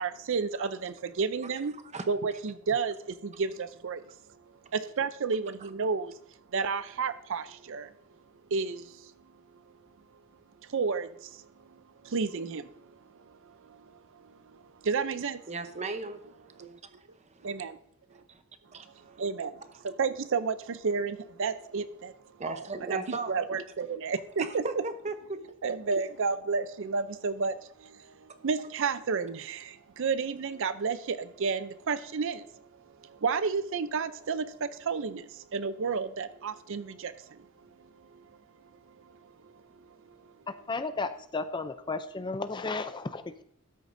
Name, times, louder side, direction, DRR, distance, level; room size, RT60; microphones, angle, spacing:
voice 1, 0.0-1.8 2.1-4.0 4.7-6.1 6.5-7.9 8.5-9.1 10.6-11.5 12.0-15.5 16.6-16.8 17.4-17.8 19.0-22.1 22.5-22.6 22.9-23.0 23.3-24.6 25.6-37.5 37.8-38.3 39.1-39.6 40.1-40.2, right 5 dB, 60° right, 13 dB, 0.5 m, -32 dB
voice 2, 15.5-16.2 16.6-16.8 17.1-17.5 18.1-18.4 18.7-19.2 22.4-23.3 24.4-25.4, right 3 dB, 30° right, 9 dB, 0.8 m, -37 dB
voice 3, 40.5-43.4, left 3 dB, 20° left, 11 dB, 0.4 m, -34 dB
13.0 x 9.9 x 2.6 m, 0.71 s
head